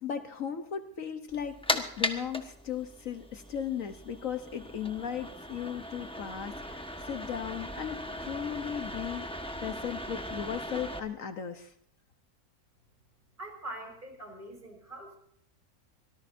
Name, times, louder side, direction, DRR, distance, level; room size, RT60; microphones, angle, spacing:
voice 1, 0.0-9.3 9.6-11.7, left 8 dB, 65° left, 8 dB, 1.3 m, -36 dB
sound 1, 1.3-11.0, left 1 dB, 5° left, 1.2 m, -38 dB
voice 2, 13.4-15.2, right 1 dB, 35° right, 2 dB, 5.1 m, -43 dB
25.0 x 18.0 x 2.7 m, 0.68 s
omnidirectional pair, 1.6 m